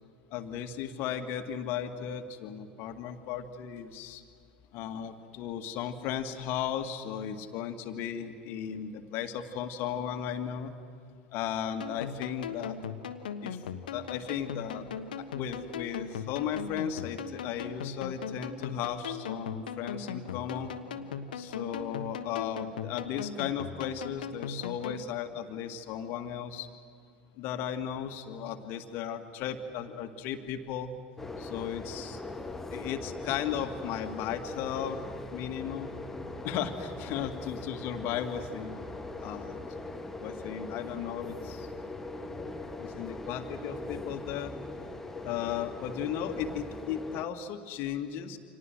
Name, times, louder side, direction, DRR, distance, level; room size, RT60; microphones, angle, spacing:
voice 1, 0.3-4.2 4.7-10.8 11.3-12.8 13.4-13.6 13.9-14.9 15.2-20.8 21.3-26.7 27.4-30.9 31.4-32.2 32.7-35.0 35.3-35.9 36.4-38.7 39.2-39.6 40.2-41.7 42.8-44.5 45.2-48.4, left 9 dB, 45° left, 7 dB, 2.0 m, -35 dB
sound 1, 11.8-25.0, left 7 dB, 65° left, 1.3 m, -39 dB
sound 2, 31.2-47.3, left 2 dB, 5° left, 1.5 m, -40 dB
29.5 x 26.0 x 6.5 m, 2.3 s
figure-of-eight pair, 75°, 5 cm